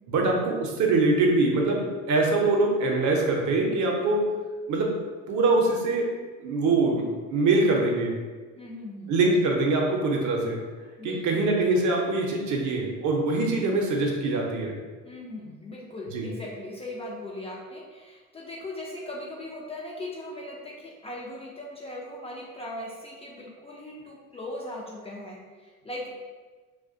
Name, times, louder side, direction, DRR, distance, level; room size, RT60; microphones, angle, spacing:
voice 1, 0.1-4.2 4.7-4.9 5.3-6.1 6.4-8.1 9.1-10.6 11.0-14.8 16.1-16.3, right 2 dB, 55° right, 0 dB, 0.6 m, -23 dB
voice 2, 8.6-9.3 11.0-11.5 15.0-26.1, left 1 dB, 20° left, -4 dB, 0.3 m, -39 dB
2.3 x 2.1 x 2.5 m, 1.4 s
hypercardioid pair, 70°, 36 cm